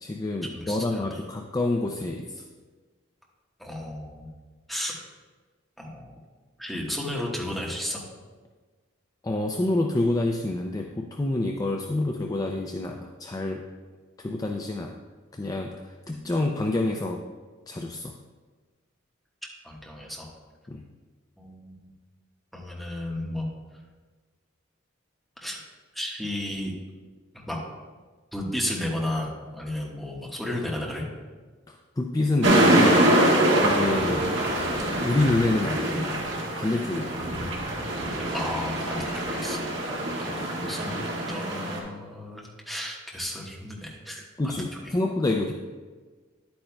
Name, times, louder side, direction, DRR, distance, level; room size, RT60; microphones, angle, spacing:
voice 1, 0.0-2.4 9.2-13.6 14.2-14.9 15.3-17.2 17.7-18.1 20.7-20.8 31.7-33.0 33.6-34.2 35.0-36.0 36.6-37.3 40.0-40.1 40.4-40.9 44.4-45.5, left 2 dB, 20° left, 3 dB, 0.4 m, -27 dB
voice 2, 0.5-1.0 3.6-4.3 4.7-5.0 5.8-6.1 6.6-8.0 16.1-16.3 19.6-20.3 21.4-21.9 22.5-23.5 25.4-25.6 25.9-26.7 27.3-27.6 28.3-31.0 38.3-39.7 40.2-41.0 41.3-44.6, left 1 dB, ahead, -3 dB, 1.3 m, -33 dB
sound 1, 32.4-41.8, right 1 dB, 65° right, 1.6 m, -24 dB
10.5 x 8.6 x 2.2 m, 1.4 s
head